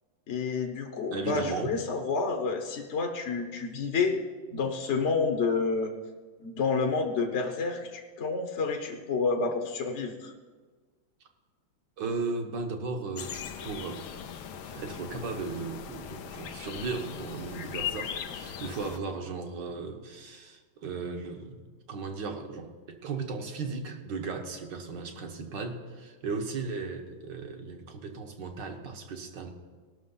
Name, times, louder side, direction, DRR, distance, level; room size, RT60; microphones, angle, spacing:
voice 1, 0.3-4.2 4.5-5.9 6.4-10.3, left 4 dB, 45° left, 2 dB, 1.0 m, -29 dB
voice 2, 1.1-1.7 12.0-13.4 13.6-14.0 14.6-21.6 21.9-29.5, right 4 dB, 65° right, 4 dB, 1.8 m, -36 dB
sound 1, 13.2-19.0, left 9 dB, 90° left, 1.5 m, -39 dB
18.0 x 6.2 x 5.6 m, 1.4 s
omnidirectional pair, 2.2 m